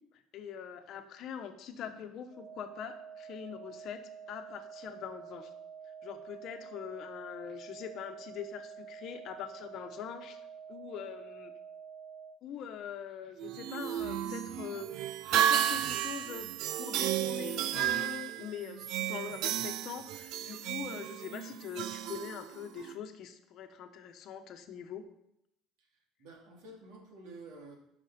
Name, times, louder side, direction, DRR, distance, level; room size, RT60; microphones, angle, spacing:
voice 1, 0.1-5.5 6.0-10.4 10.7-11.5 12.4-25.1, left 8 dB, 50° left, 6 dB, 1.1 m, -43 dB
sound 1, 2.3-12.3, right 7 dB, 5° right, 1.5 m, -48 dB
sound 2, 13.4-22.9, right 10 dB, 60° right, 0.4 m, -33 dB
voice 2, 25.8-27.8, right 2 dB, 80° right, 0 dB, 3.0 m, -51 dB
16.0 x 6.3 x 4.3 m, 0.80 s
cardioid pair, 160°, 0 cm